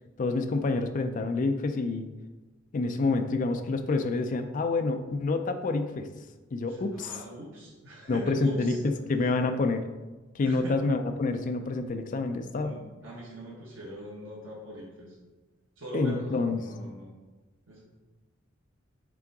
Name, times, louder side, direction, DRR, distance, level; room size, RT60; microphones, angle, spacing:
voice 1, 0.2-2.1 2.7-6.1 6.5-7.2 8.1-9.8 10.3-12.8 15.9-16.6, left 3 dB, 40° left, 6 dB, 0.4 m, -28 dB
voice 2, 6.7-8.8 9.2-9.3 10.4-10.8 12.6-15.1 15.8-17.1 17.7-17.8, equal, 85° right, -4 dB, 1.4 m, -41 dB
6.0 x 3.7 x 4.7 m, 1.2 s
head